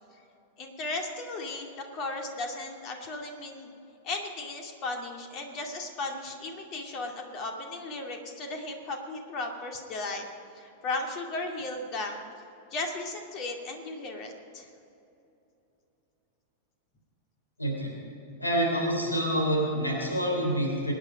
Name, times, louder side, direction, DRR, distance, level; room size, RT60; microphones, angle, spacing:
voice 1, 0.6-3.7 4.0-10.2 10.5-12.2 12.7-14.7, left 2 dB, 35° left, 3 dB, 2.3 m, -36 dB
voice 2, 17.6-17.9 18.4-20.9, equal, 85° left, -1 dB, 3.5 m, -27 dB
24.5 x 9.9 x 5.1 m, 2.8 s
figure-of-eight pair, 95°, 0 cm